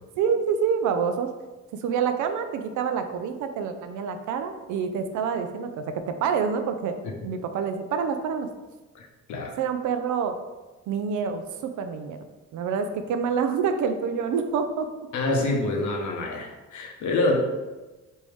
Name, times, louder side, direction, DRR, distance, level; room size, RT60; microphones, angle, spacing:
voice 1, 0.2-1.3 1.7-7.0 7.2-8.5 9.6-10.3 10.9-12.2 12.5-14.9, right 6 dB, 75° right, 7 dB, 0.4 m, -27 dB
voice 2, 8.9-9.5 15.1-17.4, left 2 dB, 75° left, 2 dB, 0.7 m, -26 dB
3.4 x 2.6 x 3.2 m, 1.2 s
cardioid pair, 90°, 30 cm